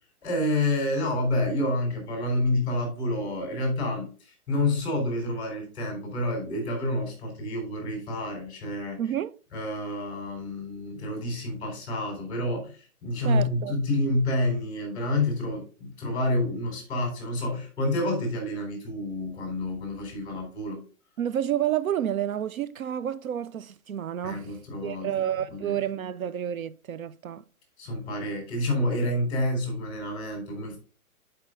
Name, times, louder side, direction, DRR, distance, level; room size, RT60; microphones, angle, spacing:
voice 1, 0.2-9.0 9.5-20.8 24.2-25.1 25.5-25.7 27.8-30.8, left 1 dB, 10° left, 3.8 m, -28 dB
voice 2, 9.0-9.4 13.2-13.7 21.2-24.6 24.8-27.4, right 10 dB, 70° right, 0.5 m, -30 dB
10.0 x 5.7 x 3.7 m
hypercardioid pair, 175°, 44 cm